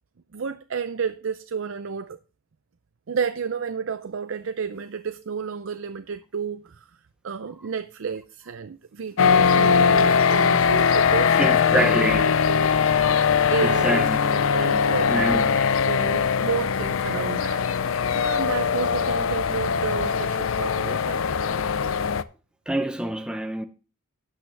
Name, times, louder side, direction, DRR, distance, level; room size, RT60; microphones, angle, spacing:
voice 1, 0.3-2.2 3.1-6.9 7.2-11.4 11.7-12.8 13.5-15.5 15.8-17.6 18.1-21.7, right 6 dB, 65° right, 0.5 m, -31 dB
sound 1, 9.2-22.2, left 6 dB, 70° left, 0.5 m, -21 dB
voice 2, 11.4-12.3 13.6-14.2 15.1-15.6 22.7-23.7, right 1 dB, 5° right, 0.6 m, -26 dB
12.5 x 8.4 x 3.4 m
head